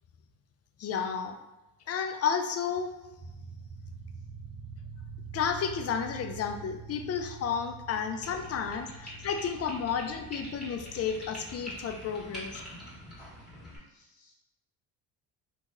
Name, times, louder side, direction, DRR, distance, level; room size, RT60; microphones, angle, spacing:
voice 1, 0.8-1.4 1.9-2.9 5.3-12.6, left 7 dB, 35° left, 6 dB, 0.4 m, -32 dB
sound 1, 3.2-13.6, right 6 dB, 45° right, 1.1 m, -46 dB
sound 2, 8.2-13.8, equal, ahead, 1.5 m, -45 dB
voice 2, 8.5-9.2 13.9-14.3, left 3 dB, 75° left, -1 dB, 0.7 m, -57 dB
2.8 x 2.7 x 2.4 m, 1.0 s
supercardioid pair, 65°, 45 cm